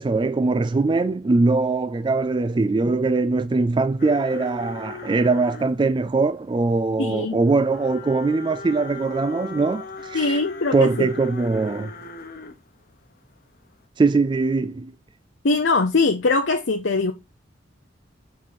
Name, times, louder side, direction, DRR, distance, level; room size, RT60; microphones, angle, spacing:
voice 1, 0.0-10.4 10.7-11.9 14.0-14.9, right 3 dB, 25° right, 0.3 m, -21 dB
sound 1, 4.0-12.6 13.1-13.5 13.7-13.8, left 3 dB, 50° left, 1.1 m, -38 dB
voice 2, 7.0-7.4 10.1-11.1 15.4-17.1, left 3 dB, 75° left, 0.8 m, -21 dB
7.4 x 4.5 x 4.2 m
head